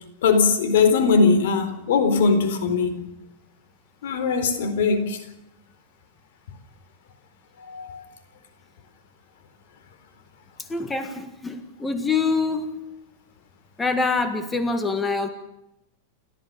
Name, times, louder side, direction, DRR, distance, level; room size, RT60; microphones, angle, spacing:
voice 1, 0.2-2.9 4.0-5.2 7.7-8.0, left 4 dB, 75° left, 4.1 m, -20 dB
voice 2, 10.7-12.7 13.8-15.3, left 4 dB, 10° left, 1.7 m, -25 dB
29.5 x 13.5 x 6.8 m
supercardioid pair, 150°, 0 cm